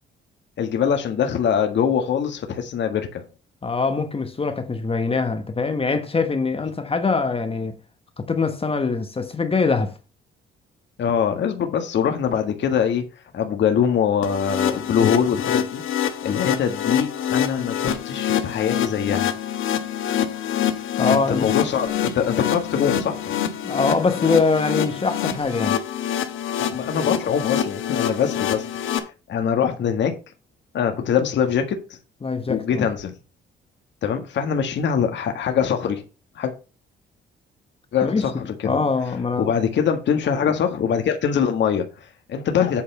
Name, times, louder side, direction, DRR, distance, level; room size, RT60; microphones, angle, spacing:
voice 1, 0.6-3.2 11.0-13.0 13.3-15.8 16.2-19.4 21.1-23.4 26.6-30.1 30.7-32.0 32.5-33.1 34.0-36.0 36.4-36.5 37.9-38.8 39.4-42.8, left 7 dB, 65° left, 1.6 m, -23 dB
voice 2, 3.6-7.7 8.2-9.9 21.0-21.5 23.6-25.8 32.2-32.9 38.0-38.2 38.6-39.5, left 4 dB, 30° left, 1.2 m, -23 dB
sound 1, 14.2-29.0, left 9 dB, 80° left, 1.4 m, -26 dB
8.6 x 4.2 x 6.9 m
cardioid pair, 90°, 20 cm